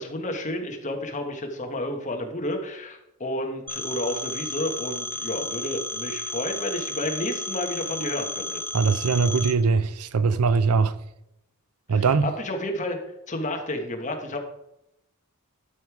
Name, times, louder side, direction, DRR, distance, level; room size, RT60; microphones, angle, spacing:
voice 1, 0.0-8.6 11.9-13.0 13.3-14.4, left 1 dB, 35° left, 1.4 m, -31 dB
Telephone, 3.7-9.5, left 1 dB, 10° left, 0.6 m, -33 dB
voice 2, 8.7-11.0 11.9-12.3, right 5 dB, 80° right, 0.6 m, -21 dB
12.0 x 5.3 x 4.8 m
head